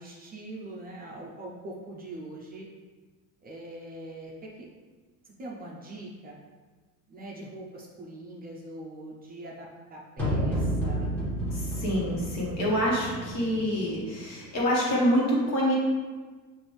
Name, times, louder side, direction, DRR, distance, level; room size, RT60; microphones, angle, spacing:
voice 1, 0.0-2.7 3.4-4.9 5.2-6.4 7.1-11.1, right 1 dB, 25° right, -3 dB, 0.5 m, -42 dB
sound 1, 10.2-14.2, right 1 dB, 5° left, 1.2 m, -31 dB
voice 2, 11.5-15.8, equal, 50° left, -4 dB, 1.4 m, -26 dB
5.8 x 2.6 x 3.3 m, 1.4 s
cardioid pair, 160°, 34 cm